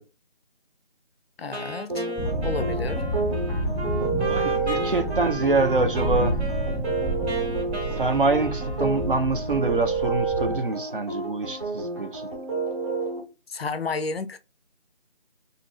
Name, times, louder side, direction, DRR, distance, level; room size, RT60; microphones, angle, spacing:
voice 1, 1.4-2.0 2.4-3.1 13.5-14.4, left 4 dB, 70° left, 0.5 m, -31 dB
Wind instrument woodwind instrument, 1.5-9.4, right 2 dB, 85° right, 1.1 m, -36 dB
sound 1, 1.9-13.2, right 4 dB, 25° right, 0.8 m, -30 dB
sound 2, 2.2-10.6, right 1 dB, ahead, 0.4 m, -30 dB
voice 2, 4.3-6.4 7.9-12.3, right 3 dB, 55° right, 0.6 m, -25 dB
2.7 x 2.4 x 3.0 m
figure-of-eight pair, 170°, 32 cm